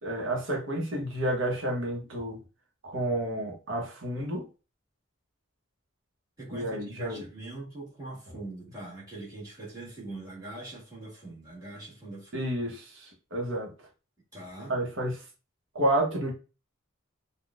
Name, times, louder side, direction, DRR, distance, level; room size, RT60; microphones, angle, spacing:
voice 1, 0.0-2.4 2.8-4.5 6.5-7.3 12.3-13.7 14.7-15.2 15.7-16.3, right 1 dB, 65° right, 1.0 m, -30 dB
voice 2, 6.4-12.5 14.3-14.8, right 2 dB, 20° right, 1.5 m, -42 dB
3.6 x 2.3 x 2.3 m
head